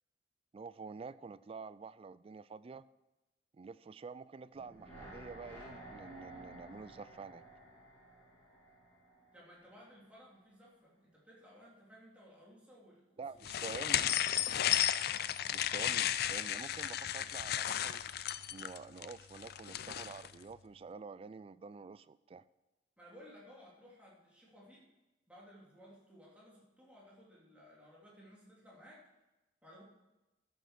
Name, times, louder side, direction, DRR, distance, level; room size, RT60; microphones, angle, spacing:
voice 1, 0.5-2.8 3.5-7.4 13.2-14.1 15.5-18.0 18.5-22.4, right 4 dB, 30° right, 17 dB, 0.3 m, -48 dB
sound 1, 4.5-9.7 10.0-10.1, right 1 dB, 10° left, 5.1 m, -53 dB
voice 2, 9.3-14.1 23.0-24.8 25.3-29.0 29.6-29.8, equal, 5° right, -5 dB, 3.0 m, -58 dB
sound 2, 13.4-20.3, left 11 dB, 55° left, 0.4 m, -34 dB
12.5 x 7.3 x 5.9 m, 1.0 s
head